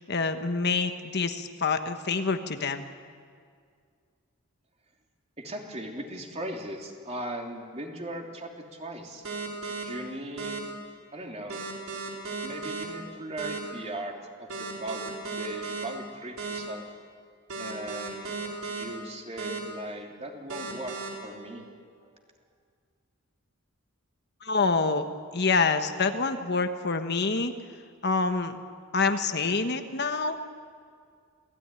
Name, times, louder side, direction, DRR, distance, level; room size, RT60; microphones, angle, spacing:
voice 1, 0.1-2.8 24.4-25.1 25.3-27.5 28.0-28.6 28.9-30.4, left 4 dB, 50° left, 7 dB, 1.2 m, -26 dB
voice 2, 5.4-9.2 9.8-10.6 11.1-11.7 12.4-16.8 17.6-18.4 18.7-21.7 22.0-22.1, right 1 dB, 30° right, 1 dB, 3.2 m, -38 dB
sound 1, 9.2-9.8 10.4-10.6 11.5-12.8 13.4-13.6 14.5-15.8 16.4-16.6 17.5-18.8 19.4-19.6 20.5-21.1, right 4 dB, 80° right, 4.9 m, -35 dB
27.5 x 18.0 x 9.9 m, 2.1 s
head